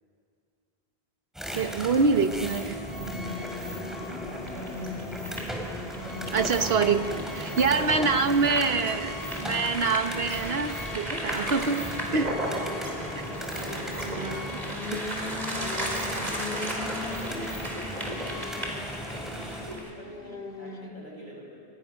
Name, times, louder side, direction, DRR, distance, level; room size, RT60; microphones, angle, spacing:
sound 1, 1.3-19.7, equal, ahead, 4.6 m, -37 dB
voice 1, 1.5-2.8 6.3-7.0 7.6-11.8 12.1-12.7 13.1-13.3 14.2-14.6, right 4 dB, 75° right, 8 dB, 1.4 m, -25 dB
sound 2, 2.9-20.9, left 3 dB, 65° left, 1.9 m, -41 dB
voice 2, 3.2-4.8 6.6-8.1 8.9-10.0 11.1-11.9 13.3-16.1 17.6-18.8 19.3-21.6, equal, 50° left, -3 dB, 7.8 m, -46 dB
sound 3, 4.4-19.9, equal, 40° right, 4.7 m, -36 dB
29.5 x 26.0 x 6.6 m, 2.4 s
omnidirectional pair, 1.1 m